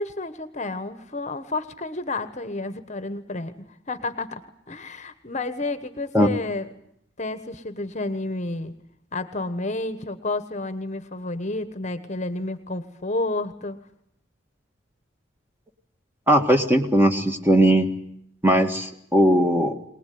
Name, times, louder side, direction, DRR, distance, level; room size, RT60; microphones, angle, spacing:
voice 1, 0.0-6.7 7.2-8.7 9.1-13.8, left 2 dB, 35° left, 11 dB, 1.2 m, -30 dB
voice 2, 16.3-17.9 18.4-19.8, equal, 10° right, 5 dB, 1.8 m, -18 dB
23.0 x 20.0 x 9.4 m, 0.72 s
head